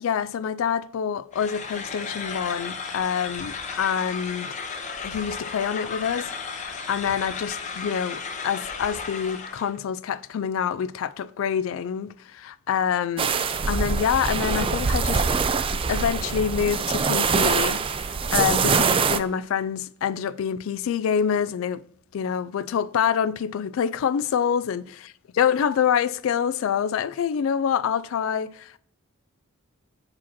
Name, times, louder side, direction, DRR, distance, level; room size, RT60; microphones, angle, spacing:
voice 1, 0.0-4.6 5.0-13.3 13.7-15.2 15.7-21.8 22.1-24.8 25.4-28.8, left 8 dB, 70° left, 0.3 m, -26 dB
sound 1, 1.3-9.8, left 5 dB, 35° left, 0.7 m, -34 dB
sound 2, 13.2-19.2, right 5 dB, 25° right, 0.3 m, -23 dB
5.9 x 4.8 x 4.2 m
head